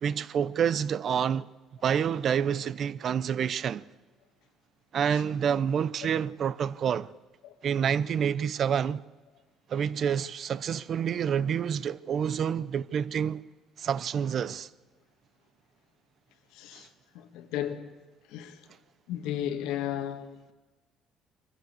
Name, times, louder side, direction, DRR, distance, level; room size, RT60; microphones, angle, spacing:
voice 1, 0.0-1.5 1.8-3.8 4.9-7.1 7.6-9.0 9.7-13.5 13.8-14.7 16.8-16.9, right 8 dB, 50° right, 0.7 m, -28 dB
voice 2, 16.5-16.9 17.1-17.9 18.3-18.6 19.1-20.5, left 10 dB, 90° left, 1.7 m, -34 dB
22.5 x 14.5 x 8.3 m
cardioid pair, 105°, 0 cm